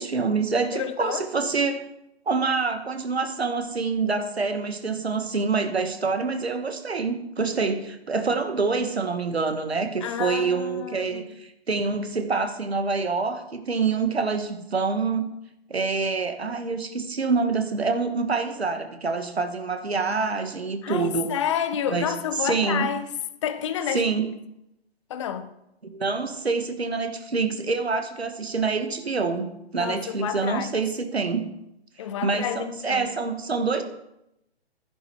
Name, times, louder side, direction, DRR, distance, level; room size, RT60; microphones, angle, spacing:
voice 1, 0.0-1.8 2.3-15.3 15.7-21.3 21.9-22.1 22.4-22.9 23.9-24.4 25.9-31.5 32.2-33.8, right 4 dB, 70° right, 1.5 m, -26 dB
voice 2, 0.7-1.3 10.0-11.4 20.8-23.1 23.4-24.0 25.1-25.5 29.7-30.7 32.0-33.1, left 9 dB, 30° left, 0.7 m, -29 dB
12.0 x 10.0 x 4.4 m
figure-of-eight pair, 130°, 32 cm